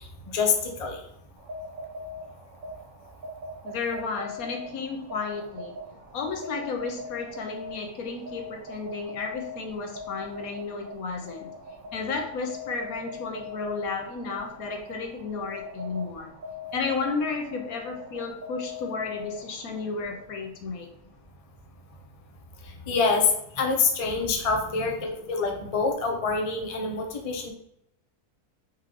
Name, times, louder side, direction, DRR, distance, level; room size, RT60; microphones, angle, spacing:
sound 1, 1.4-19.9, left 3 dB, 50° right, 0.6 m, -41 dB
voice 1, 3.6-5.8 6.1-11.5 11.9-16.3 16.7-20.9, left 4 dB, 65° left, 3 dB, 1.2 m, -33 dB
voice 2, 22.9-23.3 23.6-27.5, left 4 dB, 40° left, 2 dB, 0.5 m, -26 dB
4.4 x 3.1 x 3.7 m, 0.74 s
omnidirectional pair, 1.7 m